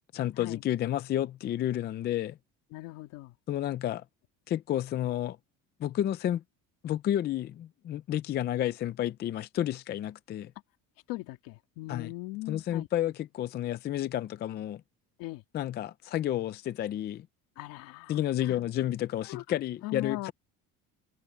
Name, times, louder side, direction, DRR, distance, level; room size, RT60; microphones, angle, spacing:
voice 1, 0.1-2.4 3.5-4.0 4.5-5.4 5.8-6.4 6.8-10.5 11.9-12.1 12.5-14.8 15.5-17.3 18.1-20.3, left 12 dB, 30° left, 0.5 m, -31 dB
voice 2, 2.7-3.3 11.1-12.9 15.2-15.4 17.6-18.6 19.2-19.4 19.8-20.3, left 20 dB, 80° left, 2.8 m, -40 dB
cardioid pair, 175°, 33 cm